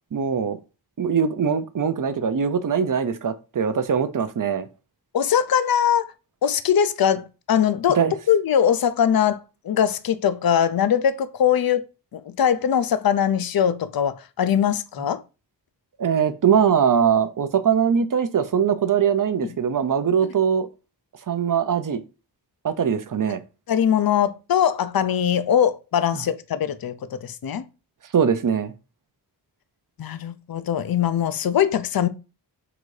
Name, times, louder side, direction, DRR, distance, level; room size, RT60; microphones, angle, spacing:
voice 1, 0.1-0.6 1.0-4.7 8.0-8.1 16.0-20.7 21.3-22.0 22.6-23.4 28.1-28.7, right 7 dB, 45° right, 0.5 m, -21 dB
voice 2, 5.1-6.1 6.4-8.0 8.3-11.8 12.1-15.2 23.7-27.6 30.0-32.1, left 9 dB, 55° left, 0.5 m, -21 dB
3.9 x 2.6 x 4.7 m
wide cardioid pair, 70°, 44 cm